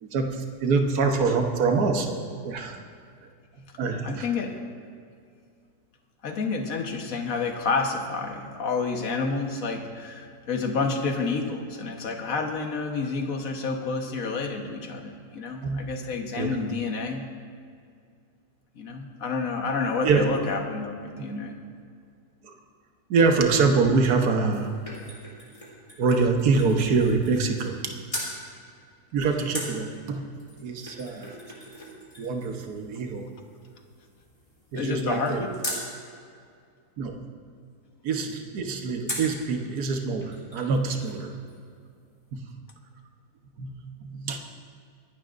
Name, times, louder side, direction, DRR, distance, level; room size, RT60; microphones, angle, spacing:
voice 1, 0.0-2.8 3.8-4.3 15.6-15.9 16.4-16.5 20.0-20.2 22.4-22.5 23.1-24.7 26.0-28.0 29.1-30.2 30.6-31.3 32.2-33.3 34.7-35.4 37.0-37.2 38.0-41.3 42.3-42.4 43.6-44.4, right 4 dB, 65° right, 3 dB, 1.6 m, -25 dB
voice 2, 4.0-4.6 6.2-17.2 18.8-21.6 34.7-35.5, left 4 dB, 55° left, 3 dB, 1.6 m, -29 dB
sound 1, 24.2-27.8 28.1-28.4 29.5-35.9 39.1-39.4 39.9-40.0 40.2-41.2 41.5-41.6, equal, 20° left, 3.3 m, -40 dB
25.0 x 11.5 x 2.6 m, 2.3 s
omnidirectional pair, 1.8 m